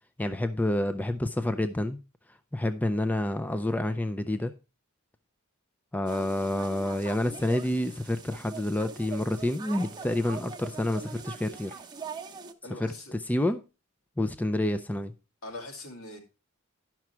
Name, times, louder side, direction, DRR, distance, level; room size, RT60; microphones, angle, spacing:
voice 1, 0.2-2.0 2.5-4.5 5.9-11.7 12.8-12.9 13.3-13.6 14.2-15.1, left 1 dB, 5° left, 0.4 m, -28 dB
sound 1, 6.1-12.5, right 5 dB, 20° right, 0.9 m, -42 dB
voice 2, 12.6-13.1 15.4-16.2, left 2 dB, 75° left, 2.4 m, -41 dB
11.0 x 6.0 x 4.4 m
head